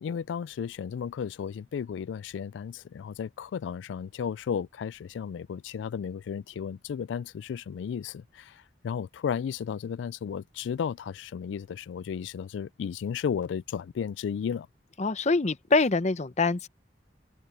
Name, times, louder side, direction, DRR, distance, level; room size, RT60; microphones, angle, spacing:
voice 1, 0.0-14.7, left 7 dB, 85° left, 0.3 m, -34 dB
voice 2, 15.0-16.7, left 3 dB, 40° left, 0.7 m, -25 dB
head